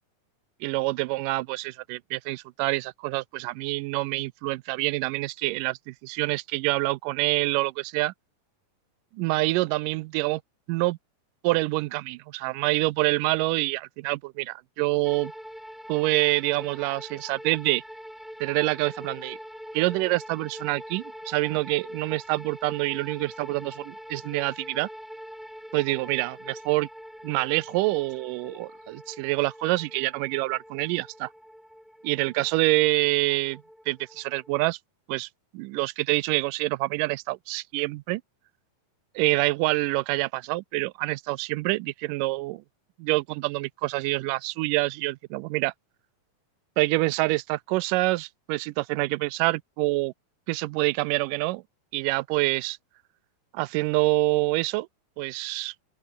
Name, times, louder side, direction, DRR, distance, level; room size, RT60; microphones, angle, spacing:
voice 1, 0.6-8.1 9.1-10.4 10.7-11.0 11.4-15.3 15.9-17.8 18.4-19.4 19.7-24.9 25.7-26.9 27.2-31.3 32.0-34.8 35.1-35.3 35.5-38.2 39.2-42.6 43.0-45.7 46.8-50.1 50.5-51.6 51.9-52.8 53.5-54.9 55.2-55.7, right 21 dB, 85° right, 2.2 m, -26 dB
sound 1, 15.0-34.6, equal, ahead, 1.7 m, -44 dB
open air
omnidirectional pair, 3.8 m